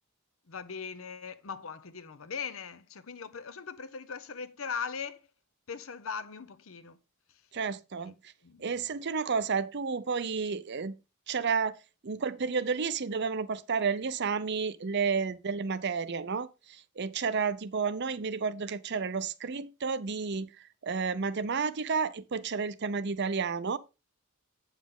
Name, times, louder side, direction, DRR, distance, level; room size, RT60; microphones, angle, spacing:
voice 1, 0.5-5.3 5.7-7.0 8.0-8.2 8.4-8.7, left 6 dB, 70° left, 0.8 m, -40 dB
voice 2, 7.5-8.1 8.6-10.9 11.3-11.8 12.0-20.5 20.8-23.8, right 5 dB, 55° right, 0.6 m, -31 dB
8.2 x 7.3 x 3.7 m
head